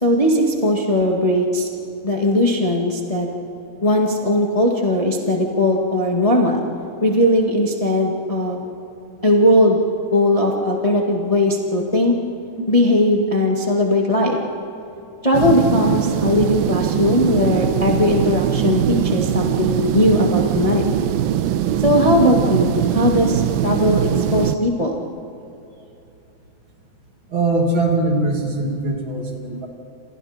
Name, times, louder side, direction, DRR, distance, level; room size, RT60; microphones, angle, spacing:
voice 1, 0.0-1.7 2.0-3.3 3.8-6.6 7.0-8.6 9.2-9.8 10.1-12.1 12.7-14.4 15.2-20.8 21.8-24.0 24.3-25.0, left 1 dB, 70° left, 0 dB, 0.3 m, -18 dB
sound 1, 15.3-24.6, right 11 dB, 80° right, 2.5 m, -21 dB
voice 2, 27.3-29.7, right 2 dB, 35° right, 1 dB, 2.5 m, -21 dB
28.5 x 28.0 x 4.4 m, 2.8 s
omnidirectional pair, 4.5 m